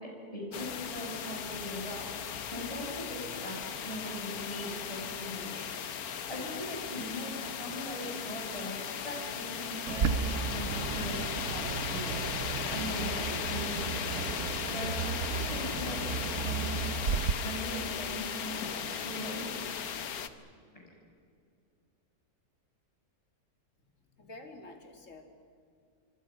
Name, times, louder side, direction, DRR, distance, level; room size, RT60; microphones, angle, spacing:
voice 1, 0.0-2.1 2.5-5.9 6.3-14.3 14.7-16.8 17.4-19.5, equal, 20° left, -2 dB, 7.1 m, -40 dB
sound 1, 0.5-20.3, left 8 dB, 75° left, 1.5 m, -37 dB
Bird, 9.9-17.3, right 6 dB, 60° right, 1.1 m, -34 dB
voice 2, 24.0-25.2, left 2 dB, 55° left, 4 dB, 2.9 m, -49 dB
28.0 x 24.0 x 6.2 m, 2.4 s
omnidirectional pair, 1.6 m